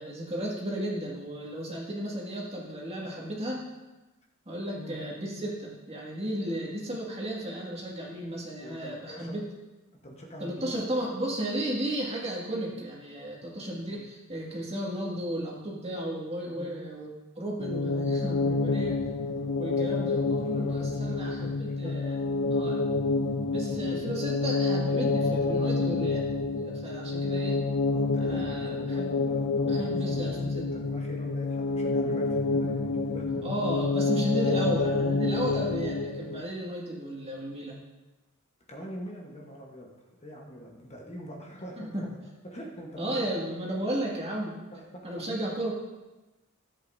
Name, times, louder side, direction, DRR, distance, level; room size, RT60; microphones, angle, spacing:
voice 1, 0.0-3.6 4.5-9.4 10.4-17.1 17.4-18.9 19.6-22.2 22.5-22.9 23.5-27.6 28.2-29.1 29.6-30.7 33.4-37.8 41.8-42.0 43.0-44.6 45.0-45.7, right 1 dB, 30° right, -3 dB, 2.1 m, -34 dB
voice 2, 8.6-9.4 10.0-10.8 13.1-14.0 16.5-16.8 18.8-18.9 19.2-19.5 20.4-22.1 27.9-33.4 38.7-39.9 40.2-42.0 42.4-43.6 44.7-45.1, equal, 30° left, -1 dB, 1.3 m, -44 dB
sound 1, 17.6-36.4, left 3 dB, 75° left, 0.6 m, -28 dB
14.0 x 8.1 x 2.7 m, 1.1 s
head